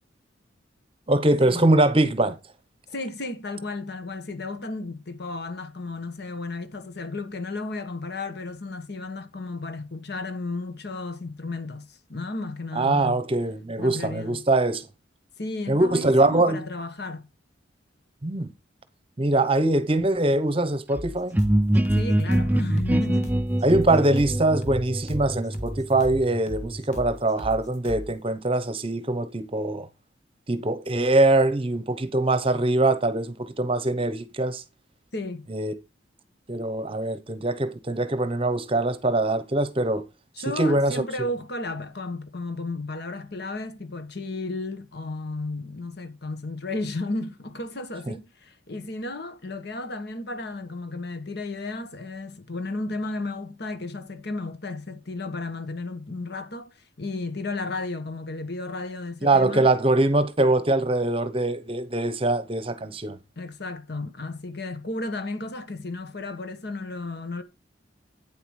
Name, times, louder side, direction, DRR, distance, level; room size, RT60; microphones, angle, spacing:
voice 1, 1.1-2.4 12.8-14.9 15.7-16.6 18.2-18.5 19.2-21.4 23.6-29.9 30.5-34.6 35.5-35.7 36.5-40.0 40.6-41.3 48.1-48.2 59.2-63.2, right 2 dB, 30° right, 0.9 m, -23 dB
voice 2, 2.9-13.2 13.8-14.4 15.4-17.3 21.9-23.4 35.1-35.5 40.3-59.7 63.4-67.4, left 2 dB, 60° left, 1.3 m, -33 dB
sound 1, 20.9-28.1, equal, 40° left, 1.6 m, -37 dB
sound 2, 21.3-27.0, right 1 dB, 10° right, 0.4 m, -25 dB
9.1 x 7.7 x 3.2 m
head